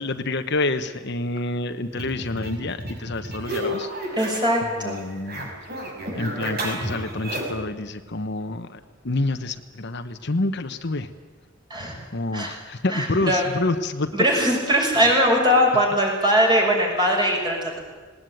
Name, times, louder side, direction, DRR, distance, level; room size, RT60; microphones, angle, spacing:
voice 1, 0.0-3.9 4.8-5.5 6.1-8.8 9.0-11.1 12.1-14.1, left 2 dB, 60° left, 9 dB, 1.1 m, -27 dB
sound 1, 1.9-4.6 4.9-7.7, right 1 dB, 55° right, 5.5 m, -32 dB
voice 2, 4.1-5.0 11.7-12.0 12.3-12.5 12.9-13.5 14.1-17.8, equal, 25° right, 0 dB, 6.3 m, -21 dB
19.0 x 19.0 x 9.3 m, 1.4 s
head